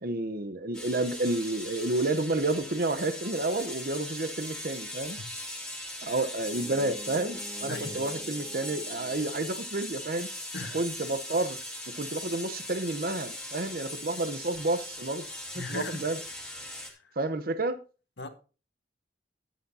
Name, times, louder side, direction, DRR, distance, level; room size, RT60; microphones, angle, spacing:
voice 1, 0.0-5.2 6.0-10.3 10.7-11.6 12.0-15.2 15.5-16.2 17.2-17.8, right 2 dB, 55° right, 0.9 m, -30 dB
sound 1, 0.7-16.9, left 1 dB, 5° left, 2.3 m, -40 dB
Bowed string instrument, 6.4-9.6, right 2 dB, 25° right, 2.1 m, -46 dB
voice 2, 7.7-8.0 10.5-10.8 15.5-16.1 17.0-17.1 18.2-18.3, left 3 dB, 75° left, 1.4 m, -38 dB
13.5 x 10.5 x 2.7 m
head